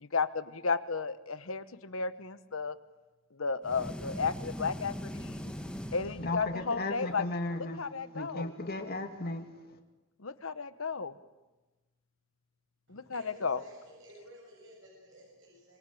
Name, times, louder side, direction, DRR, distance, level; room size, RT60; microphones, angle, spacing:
voice 1, 0.0-2.8 3.3-5.5 5.9-7.2 7.6-8.5 10.2-11.1 12.9-13.6, left 5 dB, 85° left, 1.2 m, -33 dB
sound 1, 3.6-6.8, equal, 5° left, 1.5 m, -41 dB
voice 2, 6.1-7.8 8.1-9.8, left 2 dB, 50° left, 2.5 m, -36 dB
voice 3, 12.9-15.8, right 1 dB, 65° right, 7.5 m, -54 dB
25.0 x 23.5 x 8.6 m
head